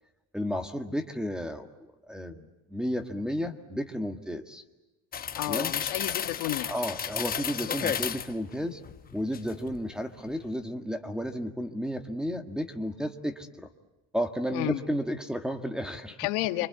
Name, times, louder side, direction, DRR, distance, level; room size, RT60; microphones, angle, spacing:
voice 1, 0.3-1.7 2.1-4.6 5.5-5.7 6.7-8.8 9.1-13.7 14.1-16.2, equal, ahead, 6 dB, 1.8 m, -32 dB
sound 1, 5.1-8.4 8.8-9.8 10.1-10.3, left 7 dB, 25° left, 0.9 m, -33 dB
voice 2, 5.3-6.7 14.5-14.8 16.2-16.7, left 18 dB, 75° left, 7 dB, 1.9 m, -31 dB
29.5 x 24.5 x 8.2 m, 1.0 s
cardioid pair, 140°, 38 cm